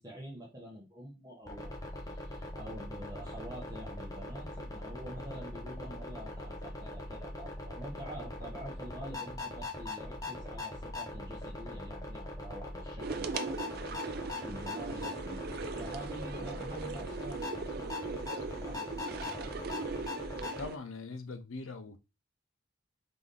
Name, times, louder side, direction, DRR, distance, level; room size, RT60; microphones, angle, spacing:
voice 1, 0.0-13.8 14.4-15.4 15.8-17.8 18.3-19.8, right 1 dB, 20° right, 1.0 m, -47 dB
sound 1, 1.5-20.7, left 2 dB, 20° left, 0.8 m, -41 dB
sound 2, 13.0-20.8, right 4 dB, 50° right, 0.4 m, -39 dB
voice 2, 20.6-22.0, left 3 dB, 85° left, 0.6 m, -42 dB
3.9 x 3.5 x 3.7 m
head